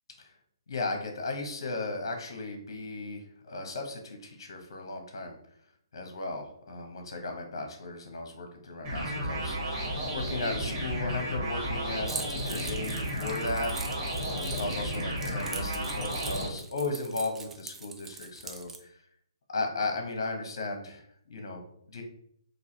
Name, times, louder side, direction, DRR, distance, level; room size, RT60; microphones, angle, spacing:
voice 1, 0.7-5.4 5.9-19.0 19.5-22.0, left 3 dB, 55° left, 4 dB, 1.1 m, -36 dB
sound 1, 8.8-16.5, equal, 30° right, 1.8 m, -33 dB
Keys jangling, 12.1-18.8, right 4 dB, 10° right, 0.4 m, -43 dB
4.0 x 2.7 x 4.1 m, 0.67 s
figure-of-eight pair, 135°, 3 cm